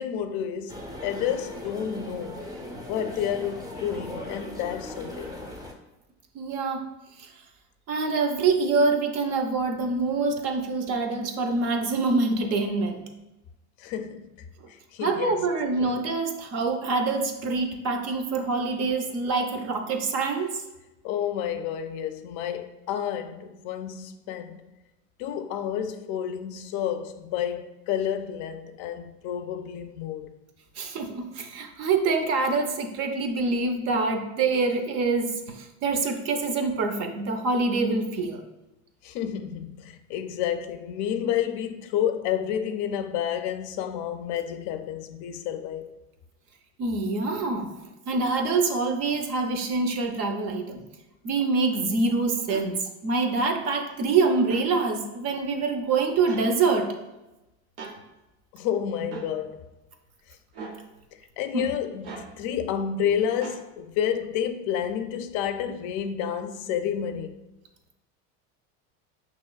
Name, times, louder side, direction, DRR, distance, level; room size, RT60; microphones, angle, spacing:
voice 1, 0.0-2.5 2.9-5.4 13.8-14.3 14.7-15.5 15.8-16.0 21.0-24.6 25.2-30.3 39.0-45.9 58.5-59.7 60.3-60.4 61.4-67.4, left 9 dB, 65° left, 0.5 m, -30 dB
sound 1, 0.7-5.7, left 1 dB, 10° right, 0.5 m, -38 dB
voice 2, 6.3-6.9 7.2-7.3 7.9-13.1 15.0-20.6 30.8-38.4 46.8-47.7 48.1-50.8 51.2-56.9 61.5-61.7, right 3 dB, 50° right, 0.6 m, -25 dB
sound 2, 52.5-52.7 54.4-54.7 56.3-56.5 57.8-58.0 59.1-59.3 60.5-60.8 62.0-62.3 63.4-63.6, right 4 dB, 90° right, 0.8 m, -38 dB
5.5 x 3.0 x 2.3 m
supercardioid pair, 120°, 32 cm